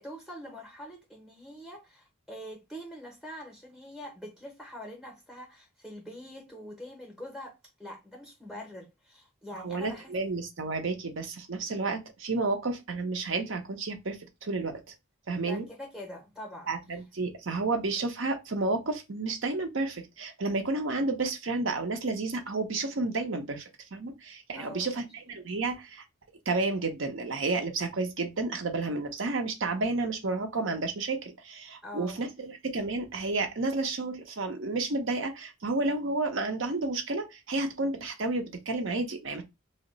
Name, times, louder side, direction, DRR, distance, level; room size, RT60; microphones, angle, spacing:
voice 1, 0.0-10.2 15.5-16.7 24.6-24.9 31.8-32.2, equal, ahead, 0.7 m, -44 dB
voice 2, 9.6-14.8 15.3-15.7 16.7-26.0 26.5-39.4, right 3 dB, 65° right, 0.7 m, -31 dB
2.8 x 2.1 x 3.9 m
head